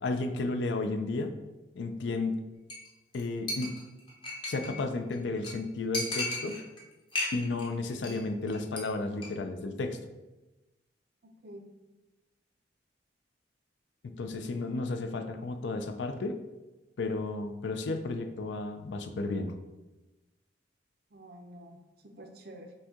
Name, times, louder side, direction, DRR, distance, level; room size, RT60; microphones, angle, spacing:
voice 1, 0.0-1.3 1.8-2.4 3.1-3.7 4.5-6.6 7.3-10.0 14.0-16.4 17.0-19.5, left 3 dB, 70° left, 7 dB, 0.4 m, -33 dB
Chink clink, 2.7-2.9 3.1-3.2 3.5-4.8 5.1-5.2 5.4-5.5 5.9-6.8 7.1-7.7 7.9-8.2 8.5-8.8 9.1-9.3, left 2 dB, 25° left, 0.7 m, -34 dB
voice 2, 11.2-11.7 21.1-22.7, right 1 dB, 55° right, 4 dB, 0.5 m, -49 dB
5.2 x 2.7 x 3.6 m, 1.1 s
head